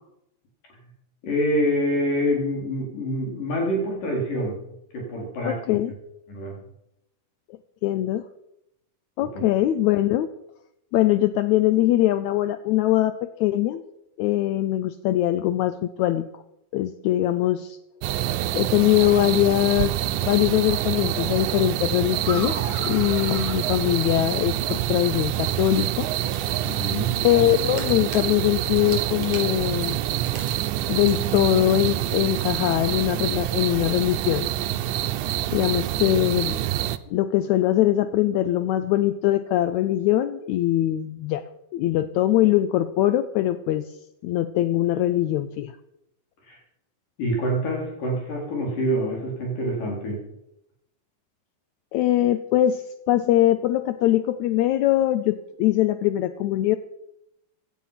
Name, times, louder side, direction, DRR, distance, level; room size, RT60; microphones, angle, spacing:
voice 1, 1.2-4.6 4.9-5.6 6.3-6.6 9.3-9.4 26.6-27.2 46.5-46.6 47.2-50.2, equal, 65° left, -1 dB, 5.8 m, -26 dB
voice 2, 5.5-5.9 7.8-8.3 9.2-10.3 10.9-13.8 14.2-16.4 16.7-17.8 18.5-19.9 20.2-26.1 27.2-30.0 30.9-34.5 35.5-36.6 37.1-41.4 41.7-43.9 44.2-45.7 51.9-56.8, left 13 dB, 85° left, 12 dB, 1.6 m, -22 dB
sound 1, 18.0-37.0, right 13 dB, 80° right, 2.0 m, -26 dB
sound 2, 22.2-24.7, right 2 dB, 20° right, 3.6 m, -36 dB
sound 3, 24.1-25.0 25.3-25.4 25.6-26.7 27.3-28.2 28.7-30.8 31.1-31.2, right 3 dB, 45° right, 4.8 m, -42 dB
16.5 x 11.5 x 5.8 m, 0.81 s
omnidirectional pair, 4.0 m